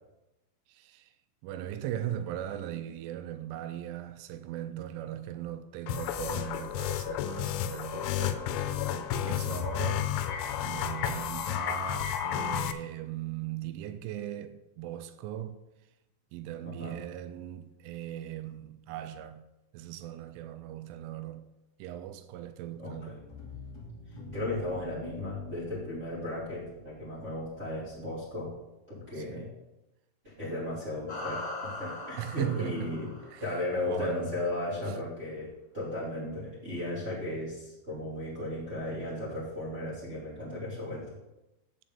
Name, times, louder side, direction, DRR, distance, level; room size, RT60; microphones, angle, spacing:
voice 1, 0.7-1.1 1.4-15.6 16.3-19.4 19.7-21.5 21.8-23.2 29.1-29.5 32.2-33.0 33.3-34.4 34.9-35.0, right 11 dB, 85° right, 2.7 m, -39 dB
sound 1, 5.9-12.7, left 10 dB, 85° left, 3.3 m, -32 dB
voice 2, 16.6-17.0 22.8-23.1 24.3-28.5 28.9-29.5 30.2-33.1 33.4-41.1, left 1 dB, 40° right, 1.0 m, -35 dB
sound 2, 23.2-28.0, left 1 dB, 50° left, 1.2 m, -46 dB
sound 3, 31.1-33.8, left 2 dB, 30° left, 0.7 m, -40 dB
10.5 x 8.9 x 3.6 m
omnidirectional pair, 6.0 m